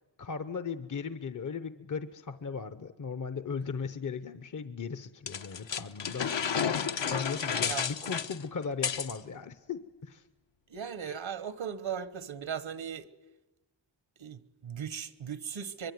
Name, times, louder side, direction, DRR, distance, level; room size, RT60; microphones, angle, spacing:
voice 1, 0.0-6.7 7.0-10.3, left 5 dB, 40° left, 0.9 m, -37 dB
sound 1, 5.3-9.2, left 7 dB, 70° left, 1.2 m, -31 dB
voice 2, 10.7-13.1 14.2-15.9, right 7 dB, 80° right, 1.3 m, -38 dB
25.0 x 22.0 x 9.5 m
wide cardioid pair, 115°, 46 cm